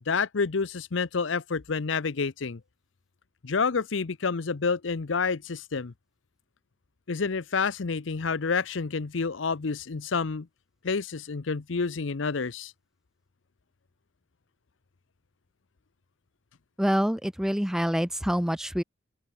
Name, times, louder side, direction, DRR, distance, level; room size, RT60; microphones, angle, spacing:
voice 1, 0.1-2.6 3.4-5.9 7.1-10.5 10.8-12.7, left 5 dB, 70° left, 0.7 m, -29 dB
voice 2, 16.8-18.8, equal, 5° right, 0.6 m, -26 dB
open air
head